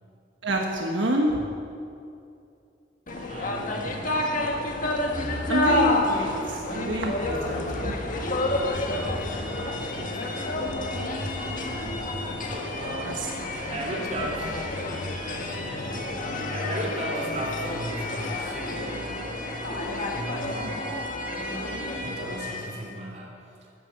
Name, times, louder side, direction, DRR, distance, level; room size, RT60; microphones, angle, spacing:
voice 1, 0.4-1.5 5.5-7.9 13.0-13.3, right 1 dB, 80° right, 1 dB, 1.4 m, -27 dB
sound 1, 3.1-22.9, left 2 dB, 45° left, 1.6 m, -30 dB
voice 2, 3.3-4.3 9.4-10.6 12.5-14.5 15.3-19.4 19.7-20.8 21.2-23.4, right 1 dB, 40° right, -1 dB, 3.1 m, -37 dB
sound 2, 4.4-12.5, equal, ahead, 4.2 m, -38 dB
13.5 x 9.6 x 8.0 m, 2.5 s
head